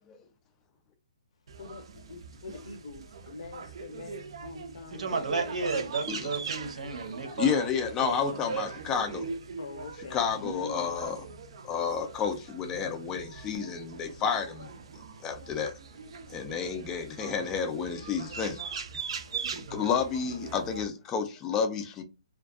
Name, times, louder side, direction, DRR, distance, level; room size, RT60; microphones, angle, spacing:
sound 1, 1.5-20.8, right 5 dB, 50° right, 0.5 m, -41 dB
voice 1, 1.6-6.0 9.6-10.9, left 2 dB, 60° left, 0.5 m, -44 dB
voice 2, 4.9-7.7 8.0-8.6 10.3-10.4, right 4 dB, 80° right, 0.9 m, -33 dB
voice 3, 7.4-9.3 10.1-11.2 11.6-14.7 15.2-15.7 16.3-18.6 19.5-22.0, left 6 dB, 15° left, 0.3 m, -30 dB
2.5 x 2.3 x 2.3 m
hypercardioid pair, 165°, 4 cm